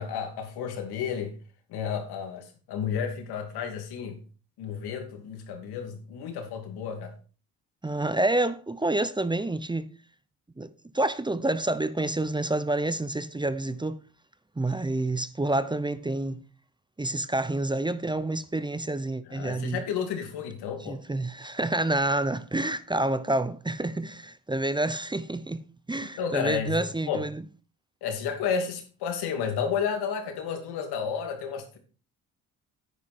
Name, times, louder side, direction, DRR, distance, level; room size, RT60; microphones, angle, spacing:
voice 1, 0.0-1.3 1.7-4.2 4.6-7.1 19.3-21.0 26.2-27.2 28.0-31.8, left 7 dB, 85° left, 2.7 m, -32 dB
voice 2, 7.8-9.9 10.6-14.0 14.6-16.4 17.0-19.8 20.8-25.6 25.9-27.4, right 2 dB, 10° right, 0.7 m, -28 dB
9.9 x 9.5 x 4.4 m
cardioid pair, 85°, 38 cm